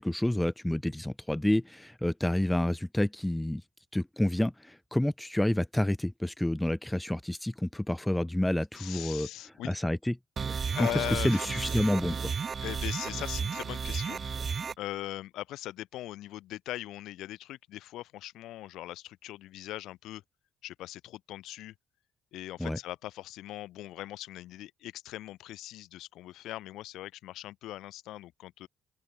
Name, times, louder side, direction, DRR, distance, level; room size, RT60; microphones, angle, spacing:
voice 1, 0.0-3.6 3.9-9.3 9.6-10.1 10.8-10.9 11.2-12.3 22.6-22.8, left 1 dB, 5° left, 0.4 m, -29 dB
voice 2, 8.7-9.8 10.7-11.9 12.6-14.4 14.8-20.2 20.6-21.7 22.3-28.7, left 15 dB, 90° left, 2.9 m, -40 dB
sound 1, 10.4-14.7, right 6 dB, 40° right, 0.6 m, -33 dB
open air
cardioid pair, 90°, 0 cm